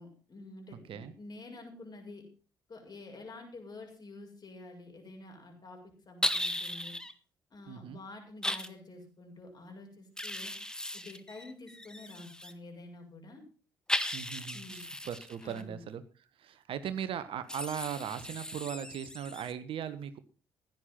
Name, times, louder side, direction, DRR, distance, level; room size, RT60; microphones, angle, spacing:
voice 1, 0.0-2.2 2.7-5.8 6.1-7.0 7.5-10.5 10.9-13.4 14.5-14.8 15.4-15.8, left 2 dB, 40° left, 2 dB, 7.1 m, -48 dB
sound 1, 6.2-7.1 8.4-8.7 10.2-12.5 13.9-15.6 17.5-19.5, left 1 dB, 5° left, 1.6 m, -36 dB
voice 2, 7.7-8.0 14.1-20.2, right 9 dB, 55° right, 12 dB, 1.3 m, -39 dB
16.0 x 11.0 x 5.8 m, 0.37 s
figure-of-eight pair, 45°, 11 cm